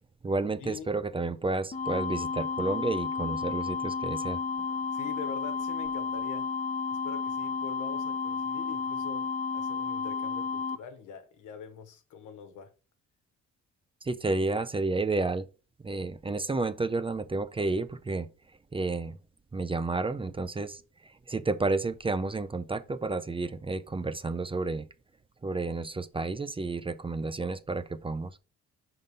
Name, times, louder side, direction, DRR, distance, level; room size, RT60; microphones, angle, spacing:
voice 1, 0.2-4.4 14.0-15.5 15.8-18.3 18.7-19.2 19.5-20.8 21.3-24.9 25.4-28.4, right 3 dB, 20° right, 0.5 m, -31 dB
sound 1, 1.7-10.8, left 5 dB, 25° left, 0.7 m, -32 dB
voice 2, 4.9-6.5 6.9-12.7, left 7 dB, 85° left, 1.2 m, -44 dB
5.3 x 3.9 x 5.1 m
cardioid pair, 90°, 30 cm